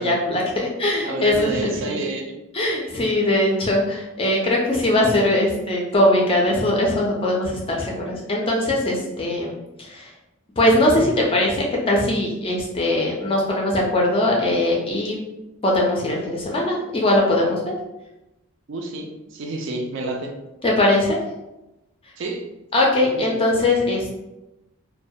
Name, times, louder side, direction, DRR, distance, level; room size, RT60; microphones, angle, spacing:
voice 1, 0.0-2.1 2.5-9.5 9.8-10.1 10.6-15.2 15.6-17.7 20.6-21.2 22.7-24.2, left 1 dB, 25° left, -2 dB, 0.4 m, -21 dB
voice 2, 1.0-2.4 18.7-20.4 22.2-22.5 23.2-23.4, right 2 dB, 55° right, 2 dB, 0.3 m, -29 dB
2.2 x 2.1 x 2.6 m, 0.96 s
head